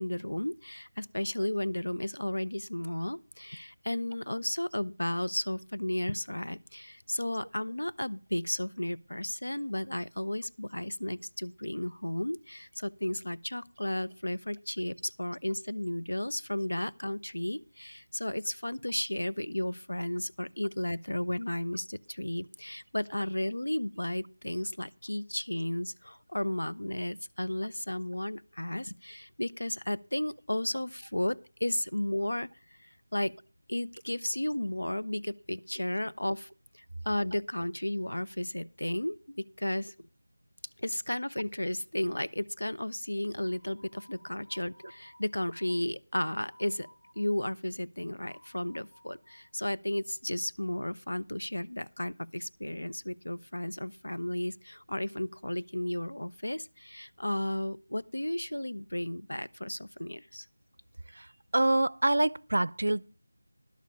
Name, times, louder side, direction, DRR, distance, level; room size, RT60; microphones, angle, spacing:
voice 1, 0.0-33.3 33.7-36.5 36.7-40.1 40.8-60.5, left 1 dB, 90° left, 0.6 m, -34 dB
voice 2, 61.5-63.1, right 1 dB, 65° right, 0.4 m, -26 dB
11.5 x 6.6 x 6.2 m
figure-of-eight pair, 170°, 0 cm